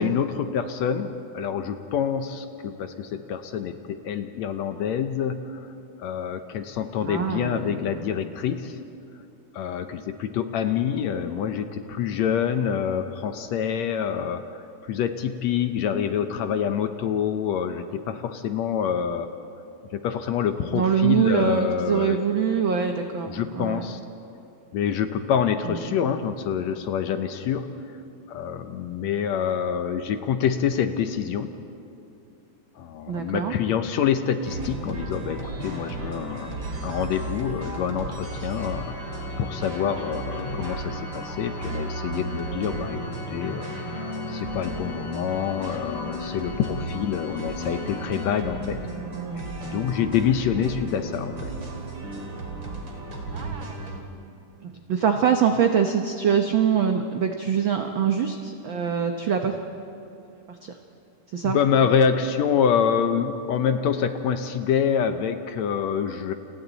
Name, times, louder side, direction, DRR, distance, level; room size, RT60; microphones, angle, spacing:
voice 1, 0.0-5.7 6.0-8.8 9.5-19.3 19.9-22.2 23.3-24.0 24.7-27.7 28.3-31.5 32.8-43.0 43.3-48.8 49.6-51.5 61.4-66.3, left 8 dB, 70° left, 8 dB, 1.9 m, -26 dB
voice 2, 7.0-8.1 20.7-23.8 25.7-26.0 33.1-33.5 53.3-53.9 54.6-59.5 60.6-60.7 61.3-61.6, right 7 dB, 75° right, 4 dB, 1.1 m, -24 dB
sound 1, 34.4-54.0, right 2 dB, 40° right, 2.9 m, -34 dB
Organ, 38.2-49.0, left 5 dB, 45° left, 2.6 m, -40 dB
29.5 x 29.0 x 4.1 m, 2.7 s
omnidirectional pair, 3.6 m